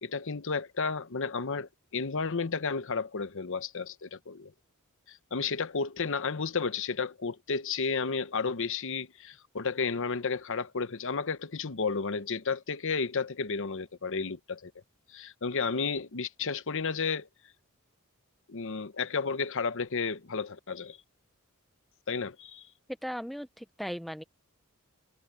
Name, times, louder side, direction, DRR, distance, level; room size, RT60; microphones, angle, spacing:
voice 1, 0.0-4.5 5.1-14.7 15.1-17.3 18.5-21.0 22.1-22.7, left 5 dB, 60° left, 0.9 m, -32 dB
voice 2, 23.0-24.2, equal, ahead, 0.5 m, -37 dB
head